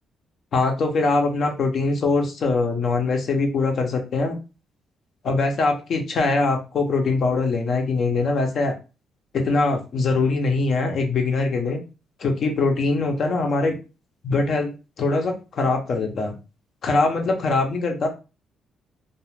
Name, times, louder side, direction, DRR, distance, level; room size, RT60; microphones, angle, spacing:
voice 1, 0.5-4.4 5.2-8.8 9.3-11.8 12.2-13.8 14.2-14.7 15.0-16.3 16.8-18.1, left 3 dB, 60° left, 3 dB, 0.7 m, -22 dB
2.4 x 2.3 x 3.2 m, 0.31 s
cardioid pair, 90°, 0 cm